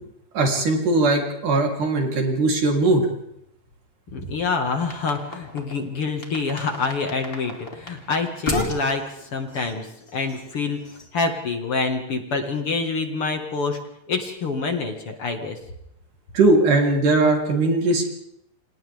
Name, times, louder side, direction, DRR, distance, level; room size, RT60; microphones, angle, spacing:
voice 1, 0.3-3.0 16.3-18.1, right 2 dB, 75° right, 1 dB, 5.1 m, -19 dB
voice 2, 4.1-10.8 11.1-13.8 14.1-15.6, left 4 dB, 50° left, 4 dB, 2.5 m, -26 dB
sound 1, 4.7-5.9 6.2-11.1, left 2 dB, 20° left, 2.5 m, -33 dB
29.5 x 27.0 x 3.6 m, 0.76 s
omnidirectional pair, 3.7 m